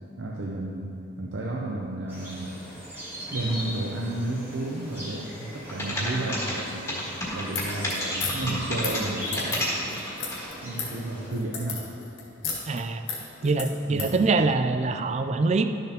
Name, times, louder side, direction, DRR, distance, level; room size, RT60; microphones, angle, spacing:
voice 1, 0.2-0.9 1.2-2.6 3.3-7.0 7.3-10.1 10.6-11.9 13.9-14.2, right 2 dB, 80° right, -2 dB, 0.7 m, -32 dB
sound 1, 2.1-11.3, equal, 10° right, 1.9 m, -39 dB
sound 2, 5.7-10.5, left 1 dB, 15° left, 1.7 m, -30 dB
sound 3, 7.5-14.2, left 5 dB, 70° left, 2.0 m, -35 dB
voice 2, 12.7-13.0 13.4-15.7, right 3 dB, 35° right, 8 dB, 0.3 m, -24 dB
12.0 x 6.7 x 2.9 m, 2.8 s
head